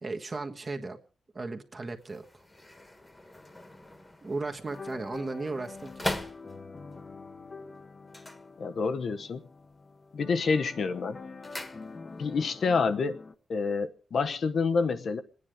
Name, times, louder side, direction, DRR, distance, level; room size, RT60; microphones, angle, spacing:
voice 1, 0.0-1.0 1.3-2.2 4.2-6.1, right 3 dB, 35° right, 1.4 m, -36 dB
sound 1, 1.9-7.0 8.0-9.2 9.4-9.9 10.3-12.4 12.6-12.7, left 1 dB, 20° left, 1.5 m, -41 dB
sound 2, 4.7-13.3, left 3 dB, 35° left, 1.0 m, -46 dB
voice 2, 8.6-9.4 10.1-11.2 12.2-13.2 13.5-15.2, left 4 dB, 65° left, 1.1 m, -28 dB
27.0 x 9.8 x 5.0 m
wide cardioid pair, 110°, 0 cm